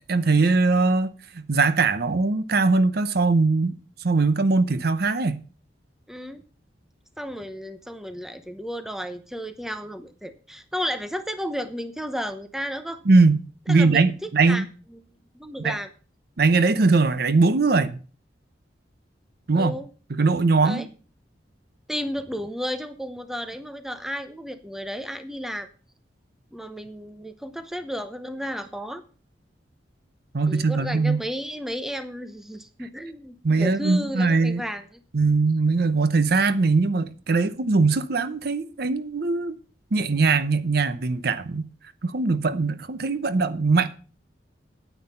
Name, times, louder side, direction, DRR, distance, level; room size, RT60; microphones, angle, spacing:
voice 1, 0.1-3.8 4.0-5.4 13.1-13.4 13.7-14.6 15.6-15.8 16.4-18.0 19.5-19.7 20.1-20.9 30.3-31.2 33.4-34.6 35.1-39.6 39.9-41.7 42.0-43.9, right 3 dB, 60° right, 0.7 m, -21 dB
voice 2, 6.1-6.4 7.2-13.0 13.7-14.6 14.9-15.0 15.3-15.9 19.5-19.9 20.6-20.9 21.9-25.7 26.5-29.0 30.5-35.0, equal, ahead, 0.8 m, -33 dB
9.5 x 9.3 x 5.5 m
head